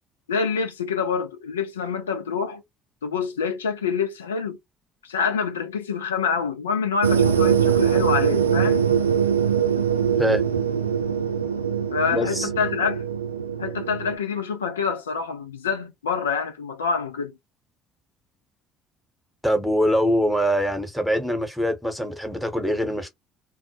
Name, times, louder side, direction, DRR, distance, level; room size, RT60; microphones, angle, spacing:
voice 1, 0.3-2.6 3.0-4.6 5.0-8.8 11.9-13.0 13.6-17.3, left 6 dB, 85° left, 0.4 m, -26 dB
sound 1, 7.0-14.2, right 8 dB, 85° right, 0.3 m, -22 dB
voice 2, 12.1-12.5 19.4-23.1, equal, ahead, 0.9 m, -23 dB
2.1 x 2.0 x 2.8 m
figure-of-eight pair, 55°, 0 cm